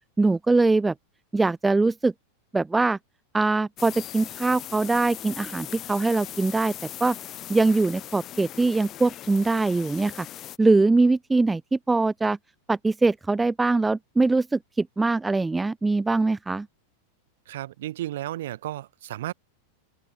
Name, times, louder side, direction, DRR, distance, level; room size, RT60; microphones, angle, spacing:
voice 1, 0.2-0.9 1.3-2.1 2.5-3.0 3.3-6.7 7.0-7.2 7.5-10.3 10.6-12.4 12.7-16.7, right 3 dB, 10° right, 0.4 m, -22 dB
sound 1, 3.8-10.6, left 12 dB, 30° left, 5.3 m, -39 dB
voice 2, 17.5-19.3, right 14 dB, 55° right, 4.5 m, -33 dB
open air
figure-of-eight pair, 90°, 0 cm